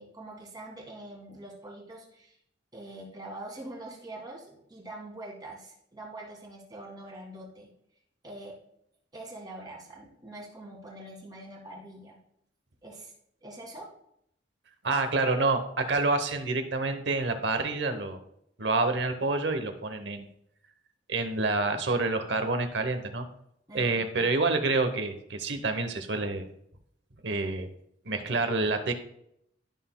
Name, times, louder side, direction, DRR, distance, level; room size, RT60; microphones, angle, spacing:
voice 1, 0.0-2.4 2.7-7.7 8.2-8.6 9.1-12.2 12.8-13.1 13.4-13.9 23.7-24.3, right 1 dB, 20° right, -2 dB, 1.9 m, -44 dB
voice 2, 14.8-18.2 18.6-20.3 21.1-23.3 23.7-26.5 27.2-27.7 28.1-28.9, right 3 dB, 65° right, 8 dB, 0.9 m, -28 dB
12.0 x 5.7 x 2.2 m, 0.75 s
head